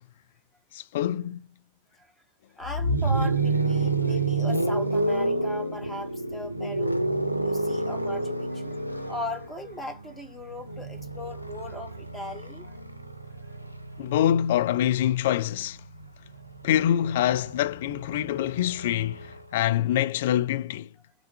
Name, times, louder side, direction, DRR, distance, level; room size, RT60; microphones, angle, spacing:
voice 1, 0.7-1.4 14.0-15.8 16.6-20.9, left 11 dB, 55° left, 0.3 m, -25 dB
voice 2, 2.6-7.0 7.4-12.8, left 1 dB, 10° left, 1.0 m, -38 dB
sound 1, 2.6-14.6 15.8-19.4, right 2 dB, 90° right, 0.4 m, -29 dB
2.5 x 2.3 x 3.3 m
figure-of-eight pair, 90°, 0 cm